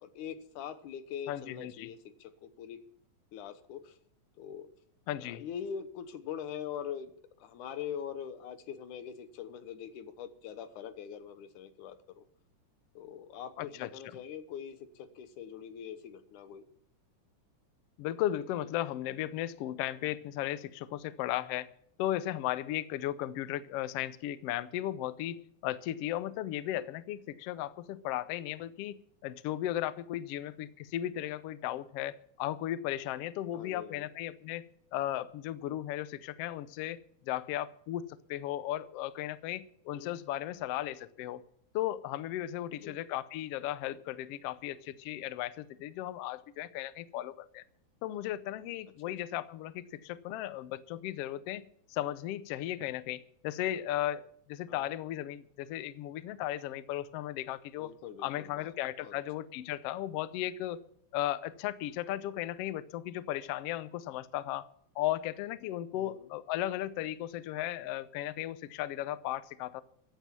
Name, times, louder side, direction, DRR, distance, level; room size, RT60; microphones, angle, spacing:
voice 1, 0.0-2.8 3.3-4.0 4.4-4.7 5.2-7.1 7.4-12.2 13.0-16.7 33.5-34.1 39.9-40.2 42.7-43.0 49.1-49.2 54.7-55.0 57.8-58.7 59.0-59.2 65.9-66.3, left 8 dB, 75° left, 11 dB, 2.5 m, -43 dB
voice 2, 1.3-1.9 5.1-5.4 13.6-13.9 18.0-21.7 22.0-34.7 34.9-41.4 41.7-47.6 48.0-51.6 51.9-57.9 58.2-60.8 61.1-64.7 64.9-69.8, left 13 dB, 90° left, 15 dB, 1.3 m, -36 dB
15.0 x 9.1 x 7.4 m, 0.66 s
omnidirectional pair, 3.7 m